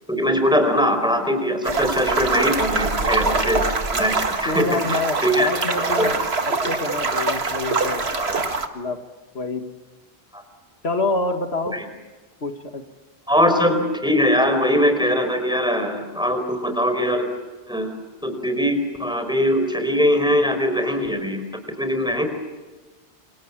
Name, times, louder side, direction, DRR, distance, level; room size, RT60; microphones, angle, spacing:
voice 1, 0.1-3.6 3.9-5.5 5.9-6.1 8.1-8.4 10.3-10.4 11.7-11.8 13.3-17.3 17.7-21.4 21.8-22.2, equal, 5° right, 6 dB, 4.7 m, -21 dB
sound 1, 1.6-8.7, right 3 dB, 85° right, 2.0 m, -23 dB
voice 2, 4.5-6.2 6.5-8.0 8.7-9.0 9.3-9.6 10.8-11.8 12.4-12.8, left 3 dB, 85° left, 6 dB, 2.1 m, -27 dB
29.0 x 26.0 x 7.4 m, 1.2 s
omnidirectional pair, 1.0 m